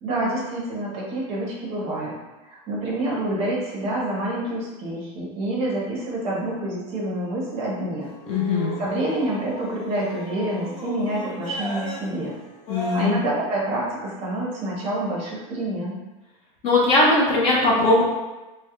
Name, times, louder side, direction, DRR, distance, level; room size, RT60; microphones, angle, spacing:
voice 1, 0.0-2.2 2.4-8.1 8.8-12.3 12.7-16.0, right 1 dB, 35° right, -4 dB, 0.6 m, -27 dB
sound 1, 8.0-13.0, left 1 dB, 50° left, 1.1 m, -36 dB
voice 2, 8.3-8.7 12.7-13.2 16.6-18.0, left 2 dB, 30° left, -4 dB, 0.4 m, -19 dB
2.3 x 2.0 x 2.8 m, 1.1 s
supercardioid pair, 155°, 19 cm